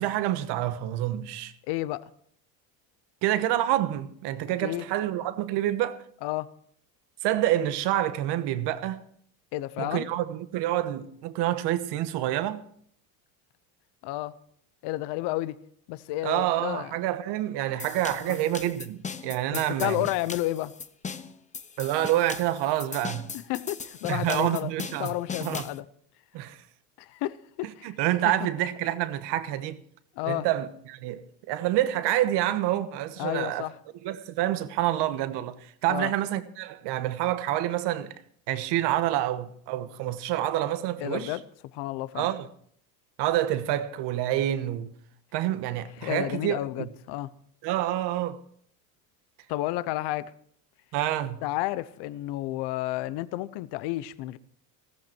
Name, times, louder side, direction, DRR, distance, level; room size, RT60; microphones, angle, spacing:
voice 1, 0.0-1.5 3.2-6.0 7.2-9.0 9.8-12.6 16.2-20.0 21.8-23.3 24.1-25.1 25.4-25.6 26.3-26.6 27.6-29.8 30.3-31.2 31.5-33.7 34.0-38.1 38.5-41.4 42.1-42.5 43.2-44.9 45.3-46.9 47.6-48.4 50.9-51.4, right 13 dB, 60° right, 1.3 m, -27 dB
voice 2, 1.7-2.0 4.6-4.8 6.2-6.5 9.5-10.1 14.0-14.3 14.8-15.6 15.9-16.9 18.3-18.4 19.5-20.7 23.5-24.7 25.0-25.9 27.0-28.0 30.2-30.5 33.2-33.7 35.9-36.1 41.0-41.4 41.7-42.3 46.0-47.3 49.5-50.2 51.4-54.4, left 16 dB, 60° left, 0.9 m, -31 dB
sound 1, 17.8-25.8, left 5 dB, 15° left, 0.8 m, -39 dB
15.0 x 14.0 x 4.6 m
supercardioid pair, 115°, 45 cm